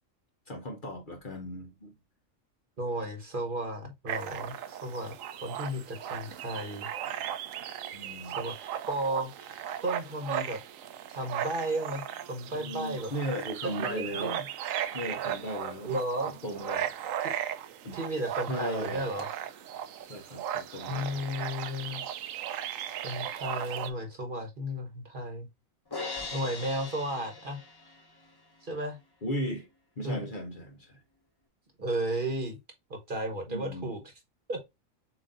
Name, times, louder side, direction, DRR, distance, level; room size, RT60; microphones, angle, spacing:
voice 1, 0.5-1.9 7.9-8.4 12.5-14.4 14.9-15.9 16.4-16.9 17.8-18.0 18.5-19.0 20.1-21.3 29.2-29.7 30.0-30.9 33.5-33.9, equal, 45° left, 0.9 m, -36 dB
voice 2, 2.8-5.1 5.4-6.9 8.2-10.6 11.1-13.1 13.6-14.4 15.8-16.3 17.2-17.3 17.9-19.2 20.9-22.0 23.0-25.5 26.3-27.6 28.6-29.0 30.0-30.2 31.8-32.5 32.9-34.1 34.5-34.7, right 1 dB, 40° right, 1.2 m, -34 dB
sound 1, 4.1-23.9, right 10 dB, 75° right, 1.0 m, -37 dB
Crash cymbal, 25.9-28.2, left 3 dB, 25° left, 0.6 m, -39 dB
7.2 x 2.7 x 2.5 m
omnidirectional pair, 1.4 m